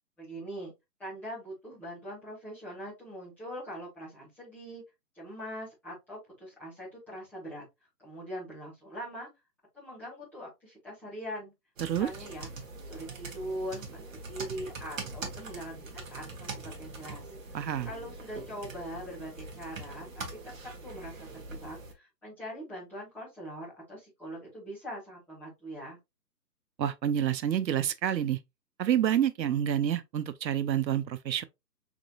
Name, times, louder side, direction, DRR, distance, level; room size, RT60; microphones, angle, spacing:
voice 1, 0.2-0.7 1.0-4.8 5.1-7.6 8.0-9.3 9.7-11.5 12.0-12.5 12.8-17.3 17.8-20.5 20.8-26.0, equal, 5° left, 1.5 m, -42 dB
sound 1, 11.8-21.9, right 3 dB, 50° right, 1.3 m, -43 dB
voice 2, 17.5-17.9 26.8-28.4 28.8-31.4, right 10 dB, 85° right, 0.7 m, -28 dB
3.9 x 3.7 x 2.3 m
hypercardioid pair, 160°, 50 cm